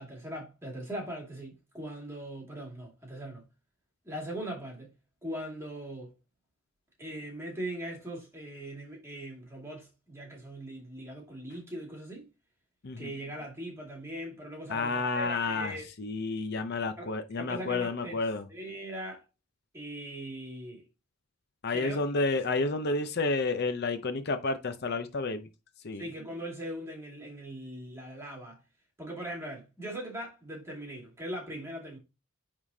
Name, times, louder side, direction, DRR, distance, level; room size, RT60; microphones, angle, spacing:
voice 1, 0.0-3.4 4.0-4.9 5.2-6.1 7.0-12.2 13.0-15.9 17.0-18.2 18.5-19.2 19.7-20.9 21.7-22.4 25.9-28.6 29.0-32.0, right 1 dB, 10° right, 2.2 m, -40 dB
voice 2, 14.7-15.7 16.0-18.4 21.6-25.5 25.8-26.0, left 3 dB, 50° left, 0.6 m, -30 dB
9.6 x 3.7 x 2.7 m
head